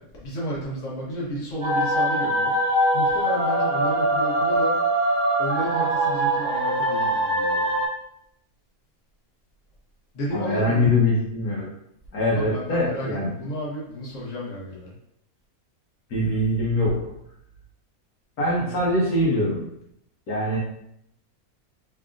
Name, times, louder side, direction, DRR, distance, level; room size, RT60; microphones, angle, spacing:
voice 1, 0.0-2.6 2.9-4.8 5.4-7.8 10.1-10.9 12.3-14.9, equal, 60° left, -6 dB, 1.5 m, -32 dB
sound 1, 1.6-7.9, right 1 dB, 50° right, 1.5 m, -22 dB
voice 2, 10.3-11.7 12.1-13.3 16.1-17.1 18.4-19.6 20.3-20.6, left 1 dB, 85° left, -6 dB, 1.5 m, -23 dB
3.7 x 3.5 x 2.5 m, 0.75 s
omnidirectional pair, 1.5 m